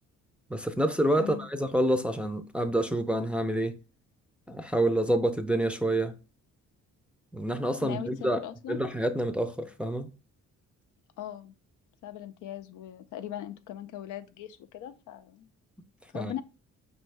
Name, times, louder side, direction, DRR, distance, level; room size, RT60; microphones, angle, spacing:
voice 1, 0.5-3.8 4.5-6.1 7.3-8.4 8.7-10.1 16.1-16.3, right 1 dB, 5° right, 0.4 m, -27 dB
voice 2, 7.8-8.8 11.2-11.6 12.0-15.5 16.1-16.4, left 11 dB, 80° left, 0.5 m, -40 dB
5.3 x 2.6 x 3.2 m
cardioid pair, 90°, 30 cm